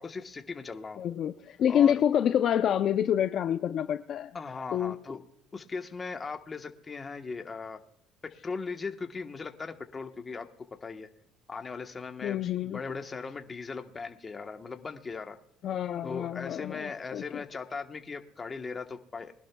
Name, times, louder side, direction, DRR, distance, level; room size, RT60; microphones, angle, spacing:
voice 1, 0.0-1.0 1.7-2.0 4.3-5.2 5.5-7.8 8.4-10.5 10.8-11.1 11.5-15.4 16.0-19.3, left 4 dB, 20° left, 1.1 m, -38 dB
voice 2, 1.0-4.3 4.7-5.0 12.2-12.8 15.6-17.4, left 9 dB, 50° left, 0.5 m, -27 dB
23.0 x 11.5 x 2.3 m
cardioid pair, 125°, 0 cm